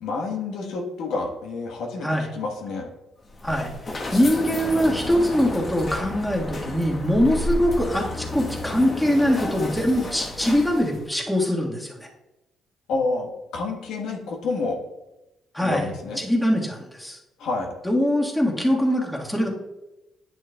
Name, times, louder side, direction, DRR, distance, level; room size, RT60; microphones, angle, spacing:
voice 1, 0.0-2.1 2.3-2.9 12.9-14.8 15.6-16.2 17.4-17.7, left 3 dB, 85° left, 1 dB, 1.2 m, -28 dB
sound 1, 3.2-11.1, left 2 dB, 40° left, 1.1 m, -32 dB
voice 2, 3.4-12.1 15.5-15.9 16.2-17.2 17.8-19.5, equal, 5° left, -1 dB, 1.5 m, -22 dB
9.9 x 6.3 x 2.2 m, 0.96 s
cardioid pair, 90°, 0 cm